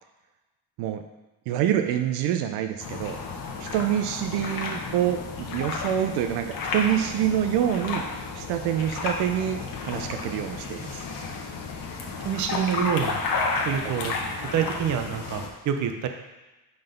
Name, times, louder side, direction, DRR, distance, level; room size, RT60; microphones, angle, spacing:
voice 1, 1.5-3.2 3.6-8.0 8.3-11.0 13.8-13.9, right 10 dB, 85° right, 6 dB, 0.6 m, -26 dB
sound 1, 2.8-15.5, left 4 dB, 60° left, 1.1 m, -32 dB
voice 2, 12.2-13.2 13.6-14.1 14.5-16.1, right 8 dB, 50° right, 6 dB, 0.7 m, -26 dB
5.6 x 3.9 x 5.2 m, 1.1 s
cardioid pair, 130°, 38 cm